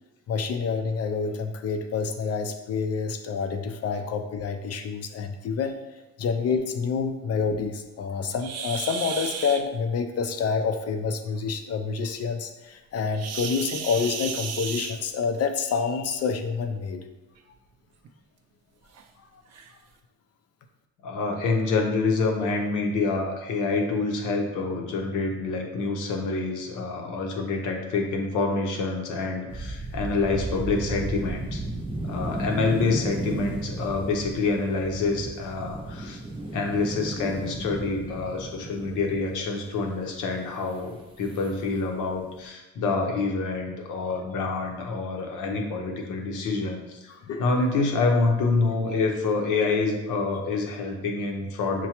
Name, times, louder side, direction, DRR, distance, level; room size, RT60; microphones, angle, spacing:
voice 1, 0.3-5.8 6.2-17.0 47.2-47.4, left 5 dB, 55° left, 6 dB, 0.5 m, -28 dB
sound 1, 8.4-9.6 13.1-15.4 16.6-16.8 17.4-17.5 18.0-18.1 18.9-19.0 19.5-19.7, right 6 dB, 60° right, 0.5 m, -34 dB
voice 2, 21.0-31.6 32.0-36.2 36.5-47.1 47.4-51.9, left 3 dB, 85° left, 2 dB, 0.8 m, -27 dB
sound 2, 29.5-39.6 40.7-40.8 41.2-41.5 41.8-42.4, right 1 dB, 15° right, 0.6 m, -34 dB
5.8 x 2.2 x 2.9 m, 1.0 s
cardioid pair, 90°, 30 cm